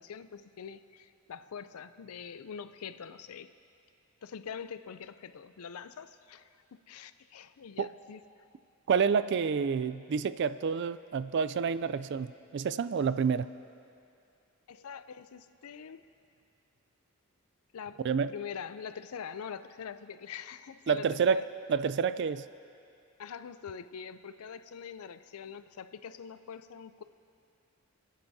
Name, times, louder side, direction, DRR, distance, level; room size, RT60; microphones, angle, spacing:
voice 1, 0.0-3.5 4.2-8.2 14.7-16.0 17.7-18.0 18.3-21.5 23.2-27.0, left 7 dB, 85° left, 13 dB, 0.5 m, -44 dB
voice 2, 8.9-13.5 18.0-18.3 20.9-21.4 21.7-22.5, right 6 dB, 55° right, 15 dB, 0.3 m, -28 dB
29.0 x 10.5 x 2.7 m, 2.5 s
head